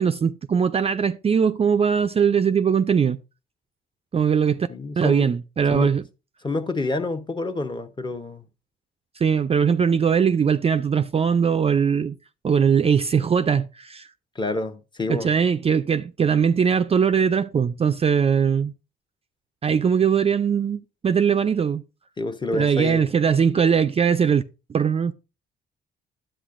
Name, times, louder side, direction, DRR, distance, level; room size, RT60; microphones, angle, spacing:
voice 1, 0.0-3.2 4.1-4.7 5.0-6.0 9.2-12.2 12.4-14.1 15.1-18.7 19.6-21.8 22.5-24.4 24.7-25.1, right 7 dB, 30° right, 0.4 m, -20 dB
voice 2, 4.7-5.3 5.7-5.9 6.4-8.4 14.3-15.3 22.2-23.1, left 2 dB, 20° left, 0.8 m, -28 dB
9.9 x 7.6 x 2.5 m
cardioid pair, 90°, 20 cm